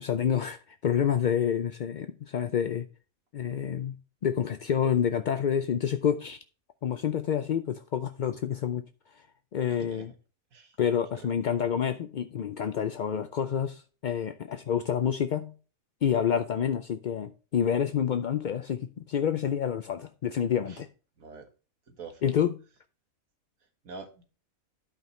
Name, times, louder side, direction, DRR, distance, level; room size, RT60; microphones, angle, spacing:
voice 1, 0.0-2.9 3.3-4.0 4.2-6.4 6.8-8.8 9.5-10.1 10.8-15.5 16.0-20.9 22.2-22.6, left 8 dB, 65° left, 0.4 m, -28 dB
voice 2, 9.7-10.1 10.5-10.8 11.1-11.3 20.6-20.8 21.2-21.5 21.9-22.4 23.8-24.2, right 4 dB, 80° right, 1.9 m, -45 dB
12.0 x 5.3 x 3.2 m
omnidirectional pair, 1.4 m